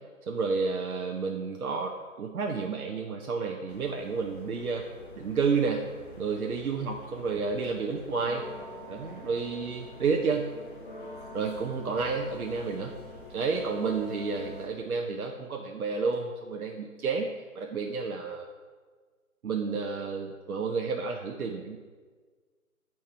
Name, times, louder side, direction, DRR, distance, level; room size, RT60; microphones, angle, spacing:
voice 1, 0.3-4.8 5.2-5.9 6.2-8.5 8.9-10.5 11.3-12.9 13.3-17.3 17.5-18.5 19.4-21.8, right 4 dB, 80° right, 1 dB, 0.7 m, -30 dB
sound 1, 3.7-14.7, left 1 dB, 35° left, 0.7 m, -45 dB
8.3 x 4.5 x 3.2 m, 1.5 s
figure-of-eight pair, 160°, 43 cm